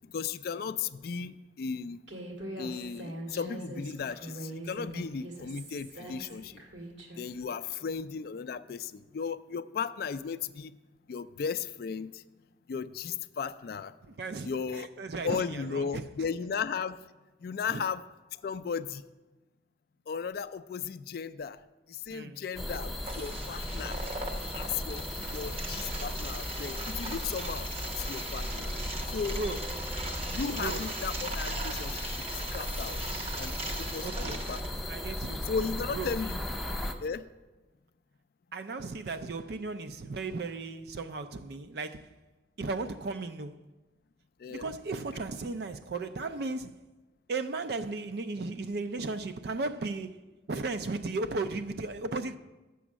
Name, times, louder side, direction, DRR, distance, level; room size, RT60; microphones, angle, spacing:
voice 1, 0.1-2.0 2.6-6.6 7.2-10.7 11.1-12.2 12.7-13.9 14.4-14.9 15.2-17.0 17.4-18.0 18.4-19.0 20.1-21.6 21.9-24.0 24.5-27.7 28.0-28.7 29.1-29.4 30.3-33.0 33.4-34.9 35.4-36.4 37.0-37.3 44.4-44.6, left 6 dB, 55° left, 0.3 m, -35 dB
Human voice, 2.1-7.3, right 1 dB, 75° right, 1.7 m, -42 dB
voice 2, 14.1-14.5 15.0-16.0 17.7-17.8 22.1-22.4 29.4-29.6 30.6-30.8 34.0-34.4 34.9-35.5 35.9-36.1 38.5-42.2 42.6-43.6 44.5-46.8 47.3-52.4, right 3 dB, 55° right, 0.4 m, -35 dB
sound 1, 22.5-36.9, left 1 dB, ahead, 0.5 m, -36 dB
sound 2, 23.1-34.7, right 2 dB, 35° right, 0.8 m, -40 dB
7.0 x 6.1 x 7.4 m
head